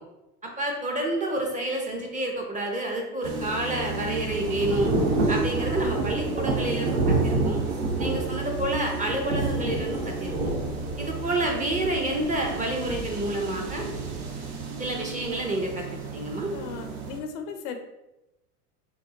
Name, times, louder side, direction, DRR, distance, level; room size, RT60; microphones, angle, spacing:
voice 1, 0.4-4.9 5.3-7.6 8.0-10.5 11.0-13.9 14.8-15.9 16.1-16.5, right 1 dB, 15° right, 1 dB, 0.6 m, -29 dB
sound 1, 3.2-17.2, right 3 dB, 60° right, 1.1 m, -35 dB
Thunder / Rain, 4.0-15.4, right 3 dB, 80° right, 1.0 m, -29 dB
voice 2, 16.5-17.8, left 6 dB, 50° left, 6 dB, 0.6 m, -36 dB
5.9 x 2.1 x 2.8 m, 0.95 s
hypercardioid pair, 95°, 48 cm